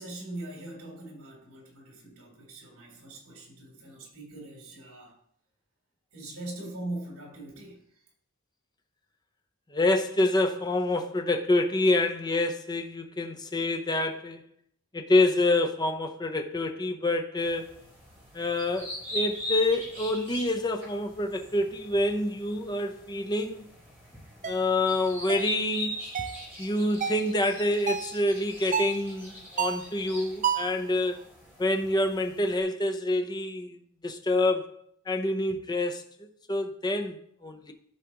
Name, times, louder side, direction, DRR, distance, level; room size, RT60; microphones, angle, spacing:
voice 1, 0.0-5.2 6.1-8.0, right 2 dB, 70° right, 3.4 m, -41 dB
voice 2, 9.7-14.4 14.9-17.8 18.3-23.6 24.4-26.0 26.6-31.2 31.6-34.7 35.1-37.7, left 2 dB, 20° left, 0.7 m, -27 dB
sound 1, 17.4-32.6, left 1 dB, 10° right, 3.5 m, -40 dB
sound 2, 24.4-24.6 25.3-25.5 26.1-26.4 27.0-27.3 27.9-28.2 28.7-29.0 29.6-29.9 30.4-30.8, right 7 dB, 35° right, 0.4 m, -30 dB
13.5 x 4.9 x 3.0 m
head